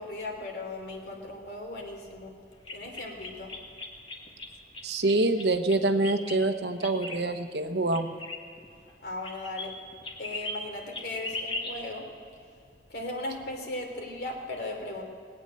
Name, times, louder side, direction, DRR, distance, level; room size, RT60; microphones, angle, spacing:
voice 1, 0.0-2.3 2.7-3.6 9.0-9.7 10.2-12.1 12.9-15.0, left 2 dB, 65° left, 1 dB, 3.1 m, -37 dB
sound 1, 2.7-4.5 4.7-6.4 6.8-7.2 7.9-8.9 9.2-9.7 9.9-10.6 10.9-11.8, left 2 dB, 30° left, 1.7 m, -37 dB
voice 2, 4.8-8.2, right 2 dB, 70° right, 8 dB, 1.0 m, -26 dB
20.5 x 9.1 x 7.6 m, 2.4 s
head